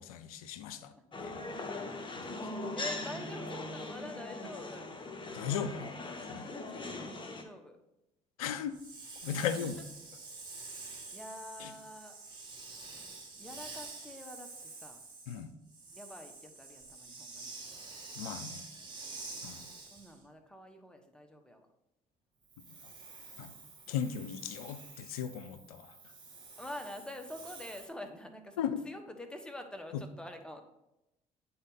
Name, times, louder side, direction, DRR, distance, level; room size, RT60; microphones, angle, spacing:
voice 1, 0.0-0.9 1.2-1.4 2.2-2.4 5.3-5.9 6.3-6.5 8.4-8.8 9.2-9.7 11.6-11.7 15.3-15.5 18.2-18.6 19.4-19.7 23.4-23.5 23.9-25.9 28.6-28.8, left 8 dB, 85° left, 11 dB, 0.4 m, -37 dB
sound 1, 1.1-7.4, left 2 dB, 25° left, 1.2 m, -40 dB
voice 2, 2.3-4.9 6.4-7.8 9.3-9.7 10.6-12.2 13.3-15.0 15.9-17.5 19.9-21.7 26.6-30.6, left 1 dB, 5° left, 5 dB, 1.2 m, -47 dB
Hiss, 8.7-20.2 22.4-27.9, right 3 dB, 25° right, 2.0 m, -48 dB
8.6 x 4.1 x 4.0 m, 0.90 s
hypercardioid pair, 55°, 18 cm